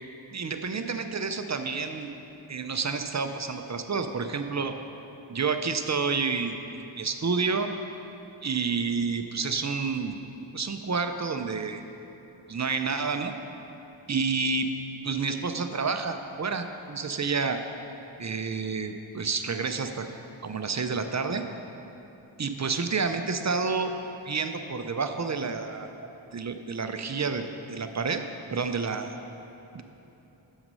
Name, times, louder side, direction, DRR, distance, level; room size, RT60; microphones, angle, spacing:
voice 1, 0.3-2.1 2.5-4.8 5.3-7.7 8.4-10.1 10.5-11.8 12.5-13.3 14.1-14.7 15.0-17.6 18.2-20.1 20.4-21.4 22.4-24.0 24.3-25.9 26.3-28.2 28.5-29.1 29.7-29.8, right 4 dB, 35° right, 7 dB, 0.5 m, -29 dB
7.4 x 6.0 x 5.4 m, 3.0 s
wide cardioid pair, 50°, 48 cm